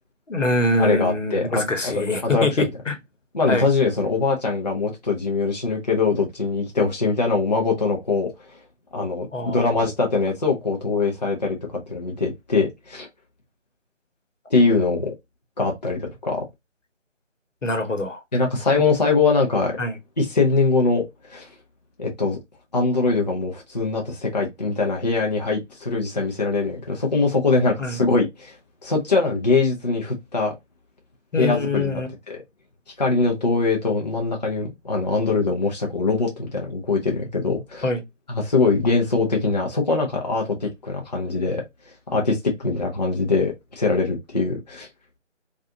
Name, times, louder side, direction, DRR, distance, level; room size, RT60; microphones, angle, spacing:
voice 1, 0.3-3.0 3.5-3.7 9.3-9.7 17.6-18.2 18.7-18.8 19.8-19.9 27.8-28.0 31.3-32.1 37.8-38.0, left 2 dB, 80° left, 1.0 m, -24 dB
voice 2, 0.8-1.9 2.2-2.7 3.3-8.3 8.9-13.1 14.5-15.1 15.6-16.4 18.3-19.8 20.2-21.5 22.0-22.4 22.7-28.5 28.8-30.5 31.4-32.4 33.0-37.9 38.3-41.6 42.1-44.9, left 3 dB, 35° left, 0.6 m, -22 dB
2.4 x 2.4 x 2.5 m
figure-of-eight pair, 155°, 37 cm